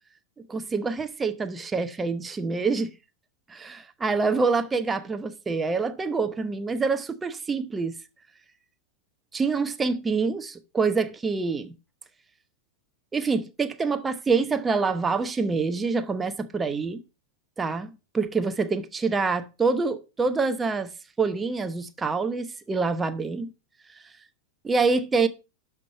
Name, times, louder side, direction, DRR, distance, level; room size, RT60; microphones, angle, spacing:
voice 1, 0.5-2.9 3.5-7.9 9.3-11.7 13.1-17.0 17.6-20.9 21.2-23.5 24.6-25.3, right 4 dB, 15° right, 0.9 m, -26 dB
11.5 x 5.9 x 4.4 m
figure-of-eight pair, 90°, 0 cm